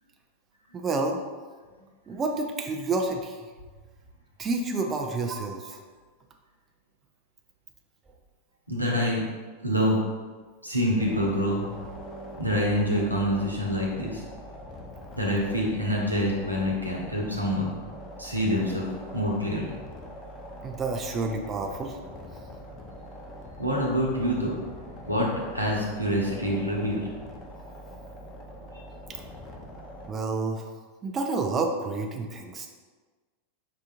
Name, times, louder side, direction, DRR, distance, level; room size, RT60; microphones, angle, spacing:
voice 1, 0.7-1.2 2.1-3.5 4.4-5.8 20.6-22.0 30.1-30.7 31.0-32.7, right 3 dB, 25° right, 3 dB, 0.5 m, -29 dB
voice 2, 8.7-9.2 9.6-10.0 10.6-11.7 12.4-14.2 15.1-17.8 18.2-18.8 19.1-19.7 23.6-24.6 25.1-27.0 28.7-28.8, equal, 90° right, -3 dB, 0.9 m, -26 dB
sound 1, 11.0-30.1, equal, 30° left, 0.7 m, -43 dB
5.7 x 3.6 x 2.5 m, 1.4 s
figure-of-eight pair, 90°, 0 cm